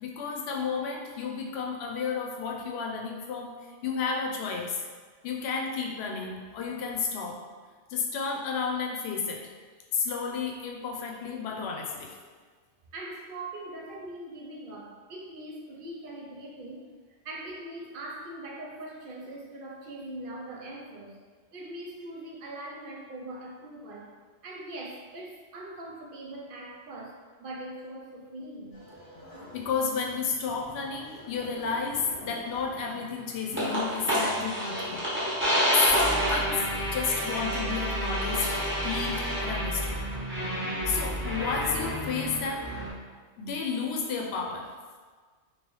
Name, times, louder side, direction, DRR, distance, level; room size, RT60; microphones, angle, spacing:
voice 1, 0.0-3.5 3.8-4.8 5.2-7.4 7.9-9.4 9.9-12.1 29.5-35.0 35.7-36.7 36.9-40.0 40.9-42.9 43.4-44.7, left 5 dB, 70° left, 1 dB, 0.8 m, -31 dB
voice 2, 12.9-16.9 17.2-21.2 21.5-24.1 24.4-28.8, right 1 dB, 60° right, -1 dB, 0.7 m, -41 dB
sound 1, 28.7-37.5, left 3 dB, 35° left, 1.0 m, -47 dB
sound 2, 33.6-42.9, equal, 10° right, 0.8 m, -29 dB
3.0 x 3.0 x 3.1 m, 1.5 s
omnidirectional pair, 1.2 m